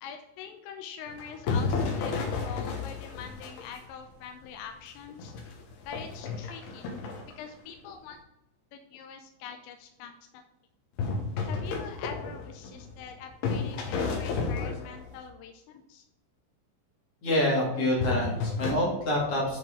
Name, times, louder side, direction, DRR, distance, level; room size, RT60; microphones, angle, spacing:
voice 1, 0.0-5.3 5.9-6.9 7.4-8.2 8.7-10.1 11.4-16.1, left 7 dB, 85° left, 5 dB, 2.6 m, -44 dB
sound 1, 1.1-3.9 4.4-4.5 5.1-7.3 11.0-13.1 13.4-15.2 18.0-18.7, left 4 dB, 70° left, 2.7 m, -32 dB
voice 2, 17.2-19.6, left 1 dB, 45° left, -5 dB, 2.1 m, -26 dB
9.5 x 4.1 x 3.8 m, 0.90 s
omnidirectional pair, 5.7 m